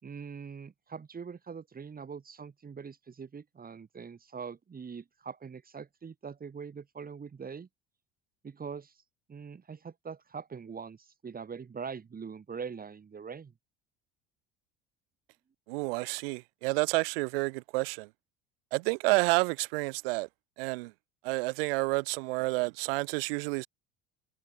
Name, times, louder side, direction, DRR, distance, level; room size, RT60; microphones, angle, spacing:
voice 1, 0.0-7.7 8.4-9.0 9.3-13.5, right 6 dB, 30° right, 6.1 m, -43 dB
voice 2, 15.7-18.1 18.7-20.3 20.6-20.9 21.2-23.7, right 26 dB, 70° right, 1.9 m, -29 dB
hypercardioid pair, 70°, 30 cm